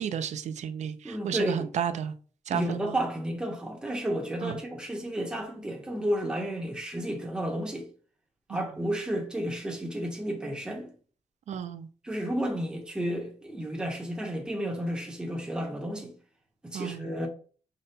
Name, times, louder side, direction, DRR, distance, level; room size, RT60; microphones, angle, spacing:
voice 1, 0.0-2.1 2.5-3.0 4.4-4.6 8.5-8.6 11.5-11.9 16.7-17.1, right 8 dB, 70° right, 0.4 m, -32 dB
voice 2, 1.0-1.7 2.5-7.9 8.5-10.9 12.0-16.1 16.6-17.3, equal, 5° right, 0.9 m, -32 dB
5.1 x 2.2 x 4.2 m
wide cardioid pair, 175°, 12 cm